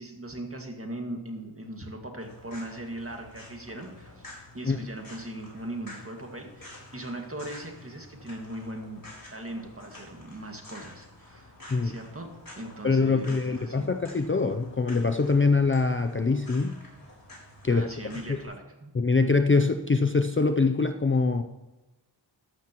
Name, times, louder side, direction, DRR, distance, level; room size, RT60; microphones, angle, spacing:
voice 1, 0.0-4.3 4.5-9.0 9.3-11.6 11.8-12.3 12.6-13.9 17.7-18.9, right 1 dB, 30° right, 3 dB, 1.9 m, -39 dB
sound 1, 2.2-18.4, left 1 dB, 50° left, 4.1 m, -49 dB
voice 2, 12.8-16.8 17.6-17.9 18.3-18.4 18.9-21.4, left 4 dB, 30° left, 8 dB, 0.5 m, -24 dB
13.5 x 11.5 x 3.0 m, 1.1 s
wide cardioid pair, 70°, 45 cm